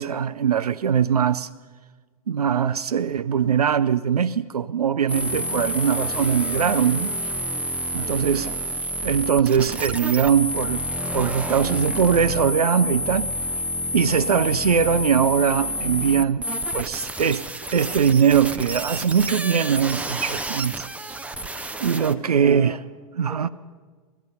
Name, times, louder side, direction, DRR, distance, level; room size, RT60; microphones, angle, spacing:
voice 1, 0.0-1.5 2.3-7.1 7.9-8.5 9.0-10.8 11.1-13.3 13.9-17.4 17.7-21.2 21.8-22.8 23.2-23.5, right 7 dB, 85° right, 0.4 m, -21 dB
sound 1, 5.1-22.1, equal, 5° right, 0.6 m, -29 dB
voice 2, 7.9-8.6 21.9-23.5, left 1 dB, 15° left, 1.4 m, -43 dB
18.0 x 14.0 x 5.5 m
figure-of-eight pair, 100°, 19 cm